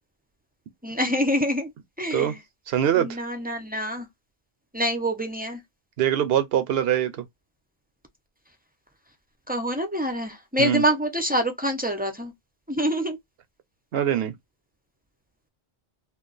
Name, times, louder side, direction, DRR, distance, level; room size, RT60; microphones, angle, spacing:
voice 1, 0.8-1.7 2.0-2.4 2.9-4.1 4.7-5.6 9.5-12.3 12.7-13.2, equal, 15° right, 0.4 m, -26 dB
voice 2, 2.7-3.1 6.0-7.2 10.6-10.8 13.9-14.3, right 10 dB, 75° right, 0.8 m, -23 dB
2.5 x 2.2 x 3.8 m
omnidirectional pair, 1.0 m